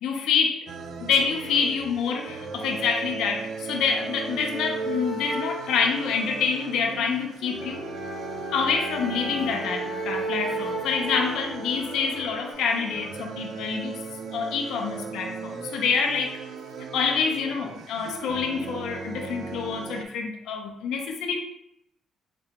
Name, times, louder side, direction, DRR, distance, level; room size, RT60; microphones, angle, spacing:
voice 1, 0.0-0.7 1.0-7.8 8.5-14.0 14.3-16.4 16.9-21.4, left 6 dB, 85° left, 2 dB, 0.4 m, -27 dB
sound 1, 0.7-20.1, right 5 dB, 65° right, 0.3 m, -38 dB
sound 2, 3.7-12.5, right 1 dB, 25° right, 1.3 m, -35 dB
3.3 x 2.9 x 2.8 m, 0.79 s
cardioid pair, 90°, 0 cm